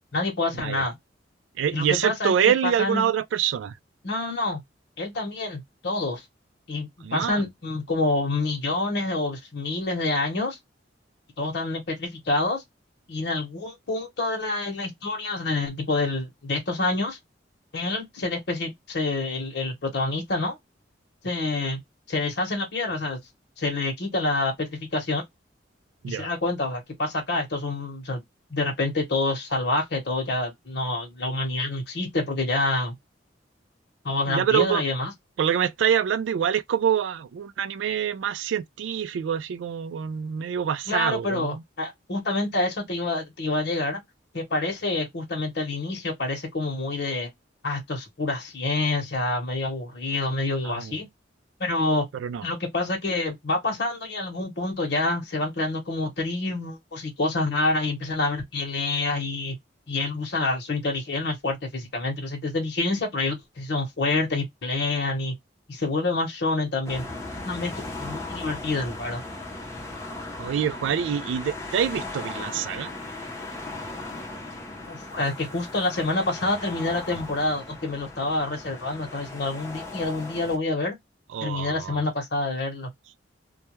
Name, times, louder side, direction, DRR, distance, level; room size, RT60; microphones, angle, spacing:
voice 1, 0.1-1.0 1.7-3.1 4.0-4.6 5.0-6.2 6.7-10.6 11.4-12.6 13.1-17.2 17.7-20.6 21.2-21.8 22.1-23.2 23.6-25.2 26.1-28.2 28.5-32.9 34.0-35.1 40.9-44.0 44.3-47.3 47.6-51.1 51.6-52.0 52.4-59.6 59.9-65.3 65.7-67.0 67.4-67.7 68.0-69.2 74.9-81.0 81.4-82.9, left 2 dB, 60° left, 0.9 m, -27 dB
voice 2, 1.6-3.8 7.0-7.4 26.0-26.3 34.3-34.8 35.4-41.6 50.6-51.0 52.1-52.4 70.4-72.9 81.3-82.0, right 8 dB, 85° right, 0.3 m, -26 dB
sound 1, 66.8-80.6, left 2 dB, 15° left, 0.7 m, -37 dB
2.2 x 2.2 x 2.9 m
head